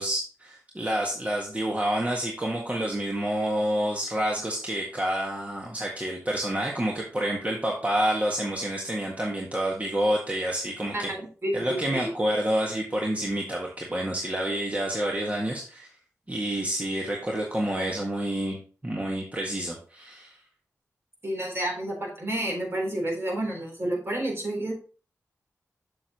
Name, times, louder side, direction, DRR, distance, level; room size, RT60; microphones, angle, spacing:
voice 1, 0.0-11.1 11.5-15.9 16.3-20.4, right 1 dB, 25° right, -1 dB, 1.7 m, -28 dB
voice 2, 10.9-12.1 21.2-24.7, right 1 dB, 45° right, 0 dB, 3.7 m, -30 dB
7.0 x 6.9 x 3.0 m, 0.39 s
cardioid pair, 45°, 6 cm